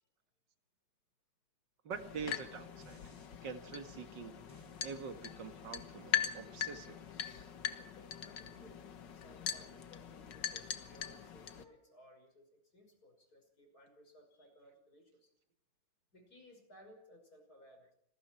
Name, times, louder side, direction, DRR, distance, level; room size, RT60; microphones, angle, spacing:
voice 1, 1.8-3.0 3.4-7.1, right 5 dB, 80° right, 7 dB, 2.4 m, -45 dB
sound 1, 1.9-11.6, left 9 dB, 80° left, 2.0 m, -41 dB
sound 2, 2.8-3.4 4.5-9.6 10.1-10.2, equal, 10° left, 5.5 m, -66 dB
voice 2, 7.8-15.3 16.1-17.9, equal, 55° left, 4 dB, 6.2 m, -61 dB
28.0 x 21.0 x 4.5 m, 0.70 s
omnidirectional pair, 1.9 m